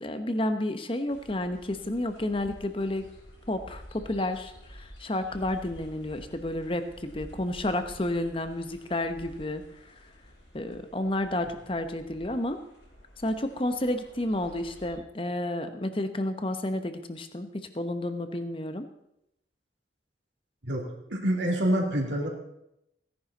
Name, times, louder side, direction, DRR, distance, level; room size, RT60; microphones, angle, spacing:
voice 1, 0.0-3.1 3.5-9.6 10.5-12.6 13.2-18.9, left 1 dB, 30° left, 9 dB, 0.9 m, -31 dB
sound 1, 1.1-15.0, equal, 90° left, 5.6 m, -50 dB
voice 2, 20.6-22.3, right 1 dB, 80° right, -1 dB, 2.7 m, -27 dB
16.5 x 10.5 x 4.1 m, 0.81 s
head